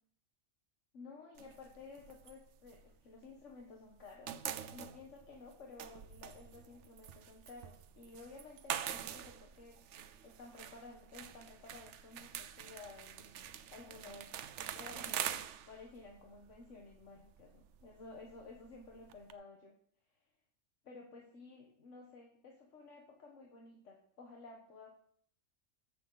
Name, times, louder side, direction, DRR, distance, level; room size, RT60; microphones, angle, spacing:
voice 1, 0.9-4.4 4.7-9.8 10.2-13.3 13.7-14.4 14.7-19.8 20.1-20.3 20.8-24.9, left 3 dB, 80° left, 0 dB, 1.6 m, -54 dB
sound 1, 1.4-3.6 3.9-19.3, right 10 dB, 75° right, 0.9 m, -45 dB
14.0 x 6.7 x 3.9 m, 0.62 s
omnidirectional pair, 1.3 m